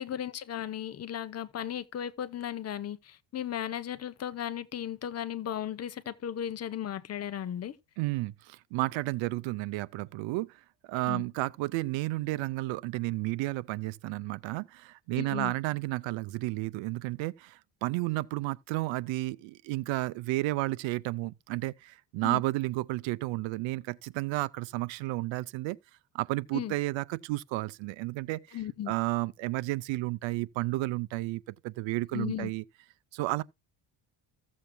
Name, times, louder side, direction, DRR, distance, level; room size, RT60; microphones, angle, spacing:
voice 1, 0.0-7.8 11.1-11.2 15.1-15.5 22.2-22.4 26.5-26.7 28.5-28.9 32.1-32.5, left 10 dB, 35° left, 0.8 m, -36 dB
voice 2, 8.0-10.5 10.9-25.8 26.1-28.6 28.9-32.6 33.1-33.4, right 19 dB, 85° right, 0.7 m, -32 dB
15.0 x 7.5 x 2.3 m
cardioid pair, 140°, 44 cm